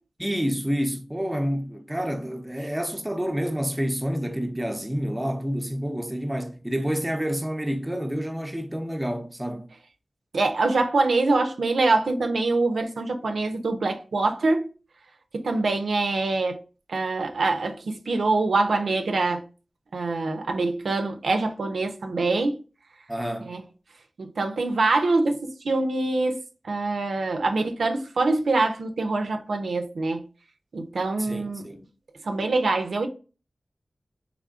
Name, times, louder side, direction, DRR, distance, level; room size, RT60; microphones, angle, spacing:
voice 1, 0.2-9.7 23.1-23.5 31.2-31.9, equal, 15° right, 0.6 m, -28 dB
voice 2, 10.3-14.7 15.3-16.6 16.9-19.4 19.9-22.6 23.5-23.6 24.2-26.4 26.6-30.2 30.7-31.6 32.2-33.1, right 3 dB, 85° right, 0.5 m, -24 dB
3.6 x 3.4 x 2.4 m
cardioid pair, 40°, 0 cm